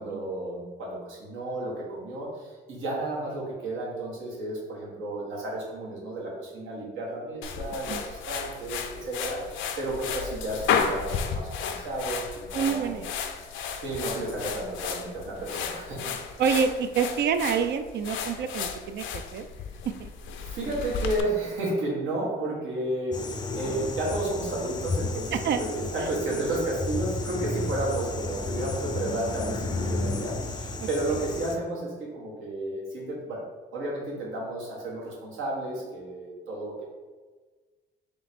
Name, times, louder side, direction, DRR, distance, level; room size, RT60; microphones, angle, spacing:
voice 1, 0.0-12.9 13.8-16.1 20.5-33.4 33.7-36.8, right 1 dB, 80° right, -4 dB, 1.4 m, -32 dB
sound 1, 7.4-21.2, left 6 dB, 80° left, 0.5 m, -33 dB
voice 2, 12.5-13.1 16.4-19.5 20.0-20.1 25.3-25.6 26.0-26.1, right 6 dB, 60° right, 8 dB, 0.4 m, -27 dB
sound 2, 23.1-31.6, left 2 dB, 20° left, 0.4 m, -32 dB
3.3 x 3.0 x 4.1 m, 1.3 s
cardioid pair, 90°, 20 cm